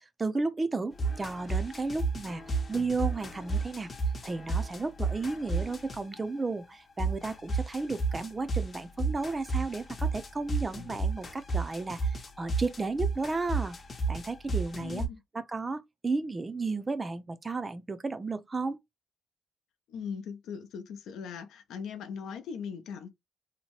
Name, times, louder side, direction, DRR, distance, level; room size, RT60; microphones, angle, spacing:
voice 1, 0.0-3.9 4.2-13.8 14.1-15.0 15.3-18.8, right 3 dB, 25° right, 0.4 m, -33 dB
sound 1, 1.0-6.2 7.0-15.1, right 3 dB, 40° left, 0.7 m, -32 dB
voice 2, 14.8-15.2 19.9-23.1, left 6 dB, 80° left, 0.5 m, -39 dB
2.8 x 2.1 x 2.9 m
cardioid pair, 90°, 0 cm